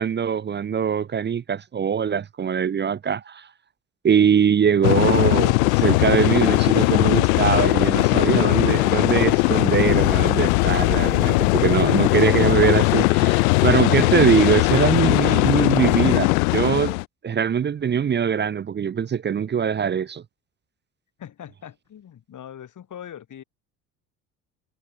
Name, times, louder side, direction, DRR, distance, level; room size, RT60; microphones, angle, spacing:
voice 1, 0.0-3.5 4.0-17.0 17.2-20.2, right 7 dB, 25° right, 0.8 m, -22 dB
sound 1, 4.8-17.0, left 25 dB, 65° left, 1.1 m, -19 dB
voice 2, 21.2-23.4, left 9 dB, 40° left, 5.0 m, -41 dB
figure-of-eight pair, 55°, 45 cm